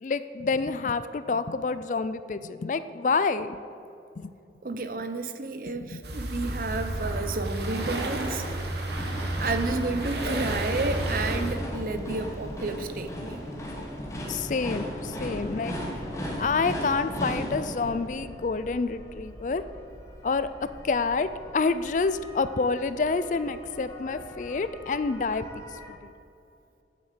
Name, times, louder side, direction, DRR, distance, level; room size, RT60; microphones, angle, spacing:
voice 1, 0.0-3.6 4.2-4.3 5.9-6.0 14.3-15.7 16.4-19.6 20.2-25.5 26.0-26.1, left 4 dB, 45° left, 13 dB, 0.4 m, -28 dB
voice 2, 4.6-8.4 9.4-13.4, right 3 dB, 50° right, 8 dB, 0.7 m, -31 dB
sound 1, 6.0-11.5, right 1 dB, 65° right, 1.4 m, -31 dB
sound 2, 8.9-25.9, equal, 15° left, 1.4 m, -38 dB
8.5 x 7.5 x 7.4 m, 2.5 s
head